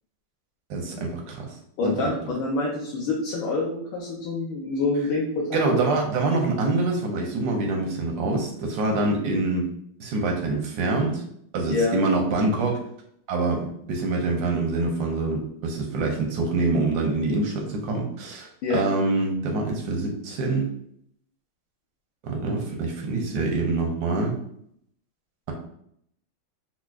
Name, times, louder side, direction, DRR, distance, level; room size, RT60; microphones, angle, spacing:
voice 1, 0.7-1.5 1.8-2.1 5.5-9.6 10.0-11.2 11.5-12.8 13.3-20.7 22.2-24.4, right 3 dB, 75° right, 1 dB, 0.9 m, -25 dB
voice 2, 1.8-6.0 11.7-12.0 18.6-18.8, left 3 dB, 75° left, -3 dB, 1.4 m, -26 dB
5.7 x 2.0 x 2.4 m, 0.70 s
omnidirectional pair, 2.4 m